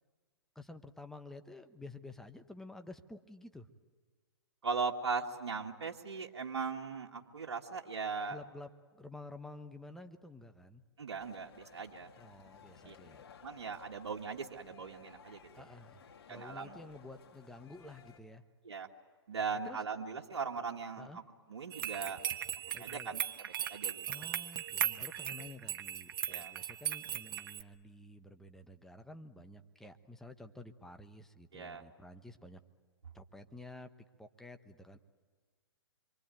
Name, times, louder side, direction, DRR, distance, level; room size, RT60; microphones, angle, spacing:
voice 1, 0.5-3.7 8.3-8.7 8.9-10.8 12.2-13.2 15.5-16.0 16.3-18.4 19.6-19.8 21.0-21.2 22.7-23.2 24.1-32.6 33.1-33.9 34.2-35.0, left 2 dB, 5° left, 7 dB, 1.2 m, -51 dB
voice 2, 4.6-8.4 11.0-12.1 12.9-13.0 13.4-15.6 16.3-16.8 18.6-18.9 19.3-21.2 21.5-22.2 22.8-24.3 26.3-26.5 31.5-31.8, right 5 dB, 80° right, 0 dB, 2.0 m, -39 dB
sound 1, 11.2-18.2, left 7 dB, 65° left, 3.1 m, -58 dB
sound 2, 21.7-27.6, right 10 dB, 55° right, 1.5 m, -38 dB
26.5 x 24.0 x 9.2 m, 1.5 s
hypercardioid pair, 130°, 14 cm